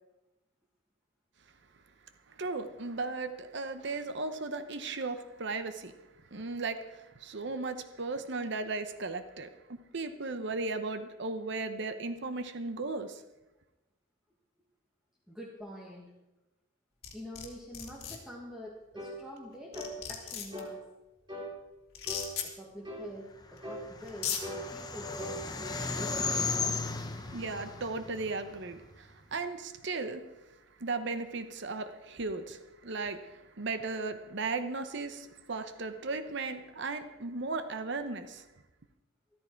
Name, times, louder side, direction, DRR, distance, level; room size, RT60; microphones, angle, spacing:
voice 1, 2.4-5.9 6.3-13.2 27.3-30.2 30.8-38.4, right 3 dB, 60° right, 10 dB, 0.9 m, -36 dB
voice 2, 15.3-16.1 17.1-20.8 22.4-25.4 25.7-26.6, equal, 5° right, -3 dB, 1.6 m, -46 dB
sound 1, 17.0-17.5 17.7-18.2 19.4-19.5 19.7-20.6 21.9-22.5 23.6-23.7 24.1-24.4, left 8 dB, 55° left, 2.4 m, -35 dB
sound 2, 19.0-19.2 19.7-20.0 20.5-20.8 21.3-21.5 22.1-22.3 22.8-23.1 23.6-23.9 24.4-26.2, equal, 25° right, 2.6 m, -40 dB
sound 3, 23.5-29.0, left 4 dB, 20° left, 0.9 m, -36 dB
13.5 x 13.5 x 4.6 m, 1.0 s
head